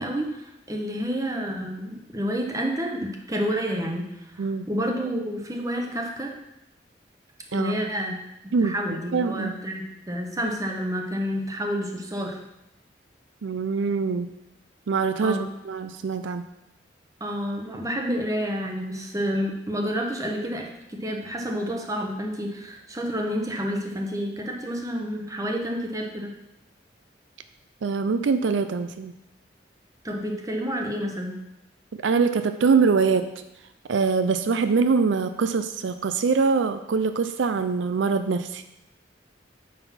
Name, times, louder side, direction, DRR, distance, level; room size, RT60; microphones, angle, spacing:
voice 1, 0.0-6.3 7.5-8.2 8.6-12.4 15.2-15.4 17.2-26.3 30.0-31.4, equal, 20° right, 1 dB, 1.1 m, -29 dB
voice 2, 7.5-7.9 8.5-8.7 9.1-9.5 13.4-14.3 14.9-16.4 27.8-29.1 31.9-33.3 33.9-38.6, right 5 dB, 80° right, 10 dB, 0.4 m, -23 dB
9.3 x 4.0 x 5.8 m, 0.87 s
head